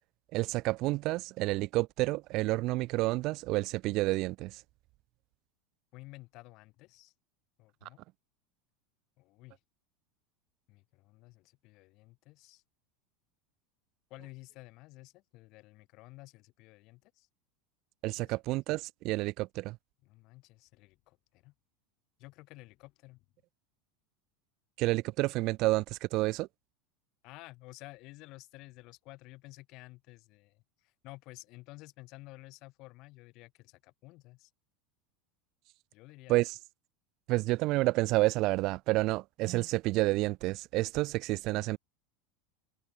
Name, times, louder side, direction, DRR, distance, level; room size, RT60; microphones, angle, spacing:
voice 1, 0.3-4.6 18.0-19.8 24.8-26.5 36.3-36.5 37.3-41.8, right 20 dB, 50° right, 0.4 m, -29 dB
voice 2, 5.9-7.1 7.6-8.0 9.2-9.6 10.7-12.6 14.1-17.3 18.1-18.4 20.0-21.5 22.2-23.2 27.2-34.5 35.9-36.5, left 21 dB, 50° left, 5.0 m, -52 dB
supercardioid pair, 140°, 0 cm